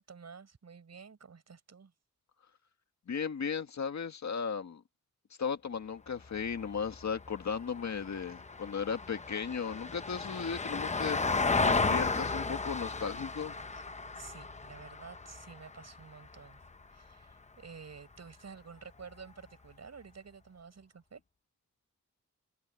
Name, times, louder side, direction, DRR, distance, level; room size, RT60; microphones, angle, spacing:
voice 1, 0.0-1.9 13.7-13.8 14.1-16.6 16.9-21.2, right 5 dB, 50° right, 7.1 m, -51 dB
voice 2, 3.1-4.8 5.4-13.6, left 6 dB, 55° left, 1.8 m, -36 dB
Vehicle, 6.2-16.7 19.0-19.1, left 3 dB, 20° left, 0.8 m, -34 dB
wide cardioid pair, 165°, 32 cm